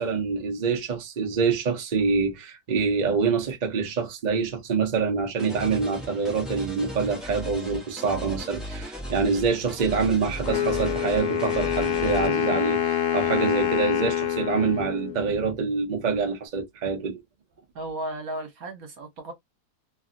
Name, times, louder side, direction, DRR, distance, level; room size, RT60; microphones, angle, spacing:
voice 1, 0.0-17.2, right 5 dB, 45° right, 0.6 m, -26 dB
sound 1, 5.4-12.3, equal, ahead, 0.8 m, -36 dB
Wind instrument woodwind instrument, 10.5-15.5, left 10 dB, 75° left, 1.3 m, -26 dB
voice 2, 17.7-19.3, right 1 dB, 60° right, 1.4 m, -34 dB
3.1 x 2.6 x 2.5 m
omnidirectional pair, 1.8 m